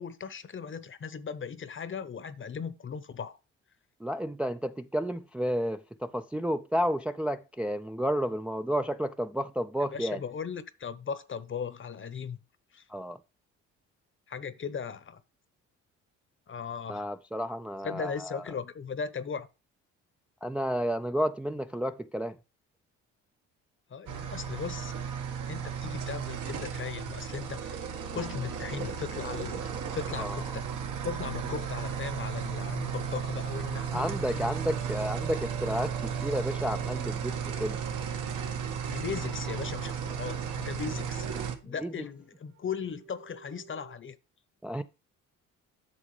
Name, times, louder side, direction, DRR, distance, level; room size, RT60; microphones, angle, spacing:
voice 1, 0.0-3.4 9.9-12.4 12.7-12.8 14.3-15.2 16.5-17.0 17.8-19.5 23.9-27.8 28.1-30.7 31.0-34.5 38.9-41.3 41.6-44.2, left 6 dB, 40° left, 0.9 m, -38 dB
voice 2, 4.0-10.2 12.9-13.2 16.9-18.4 20.4-22.4 28.1-28.2 28.8-28.9 30.2-30.4 33.9-37.8 41.7-41.9 44.6-44.8, equal, 5° right, 0.4 m, -31 dB
sound 1, 24.1-41.6, right 7 dB, 70° right, 1.5 m, -34 dB
sound 2, 34.3-43.9, right 7 dB, 50° right, 2.2 m, -53 dB
8.8 x 6.2 x 3.2 m
supercardioid pair, 75°, 32 cm